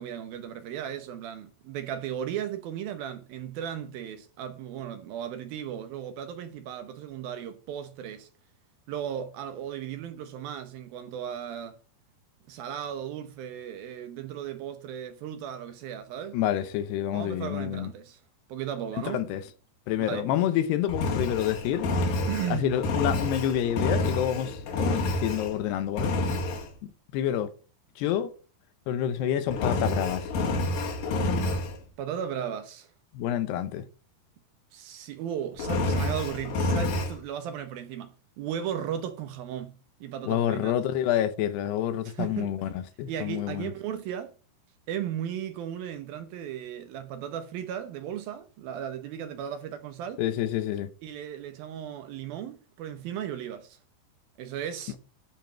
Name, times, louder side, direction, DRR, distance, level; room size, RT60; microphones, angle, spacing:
voice 1, 0.0-8.3 8.9-11.8 12.5-16.4 17.1-18.2 18.5-19.2 20.0-20.3 22.3-22.7 32.0-32.9 34.7-39.7 40.0-40.8 42.0-42.5 43.1-44.3 44.9-50.2 51.0-53.8 54.4-55.0, right 9 dB, 70° right, 2.6 m, -36 dB
voice 2, 16.3-17.9 19.1-19.4 19.9-21.9 22.5-26.2 26.8-27.5 28.0-28.3 28.9-30.3 33.1-33.8 40.2-43.7 50.2-50.9, left 11 dB, 80° left, 2.9 m, -28 dB
Engine, 20.9-25.6 26.0-26.7 29.5-31.8 35.6-37.2, left 2 dB, 60° left, 3.3 m, -28 dB
10.5 x 5.3 x 7.4 m
omnidirectional pair, 4.9 m